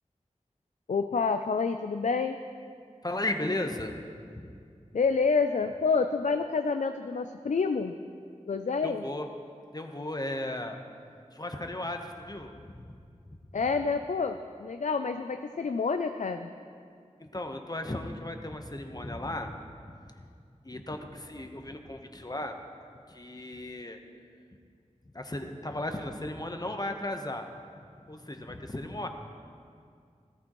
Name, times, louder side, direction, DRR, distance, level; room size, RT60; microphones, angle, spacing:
voice 1, 0.9-2.4 4.9-7.9 8.5-9.0 13.5-16.5, left 4 dB, 85° left, 7 dB, 0.4 m, -28 dB
voice 2, 3.0-3.9 4.3-4.5 8.8-9.3 9.7-10.8 11.3-12.9 17.2-19.5 19.8-20.0 20.6-22.6 23.1-24.0 25.1-27.5 28.1-29.1, left 1 dB, 30° left, 5 dB, 1.0 m, -35 dB
17.0 x 13.5 x 3.1 m, 2.3 s
wide cardioid pair, 50°, 12 cm